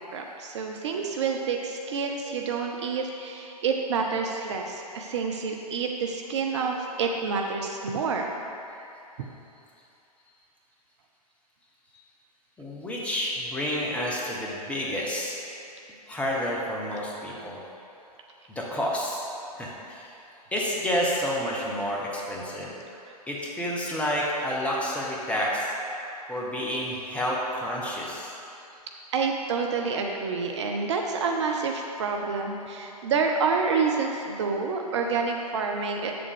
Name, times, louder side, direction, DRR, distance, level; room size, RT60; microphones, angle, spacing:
voice 1, 0.0-8.3 8.7-8.8 29.1-36.1, right 5 dB, 45° right, 2 dB, 0.6 m, -28 dB
voice 2, 12.6-15.4 16.1-17.6 18.5-19.3 19.6-20.1 20.5-22.7 23.3-25.7 26.3-28.3, equal, 5° left, -4 dB, 1.0 m, -29 dB
8.5 x 6.8 x 3.6 m, 2.8 s
figure-of-eight pair, 110°, 20 cm